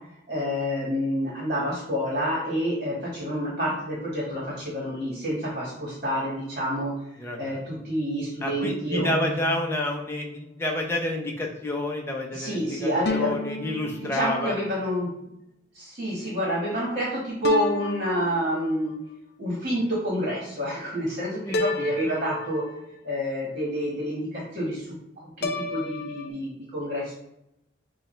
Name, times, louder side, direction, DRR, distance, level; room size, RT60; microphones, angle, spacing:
voice 1, 0.3-6.9 7.4-9.1 12.3-13.7 14.1-15.1 15.7-18.9 19.4-22.6 23.0-24.9 25.4-27.1, equal, 45° right, -4 dB, 1.4 m, -28 dB
voice 2, 7.2-7.6 8.4-14.6 21.4-22.1, left 1 dB, 15° left, 0 dB, 0.7 m, -29 dB
sound 1, 9.0-10.6 13.0-14.7 17.4-18.9 21.5-23.1 25.4-26.3, left 2 dB, 55° left, 0.5 m, -33 dB
6.8 x 2.4 x 3.2 m, 0.82 s
head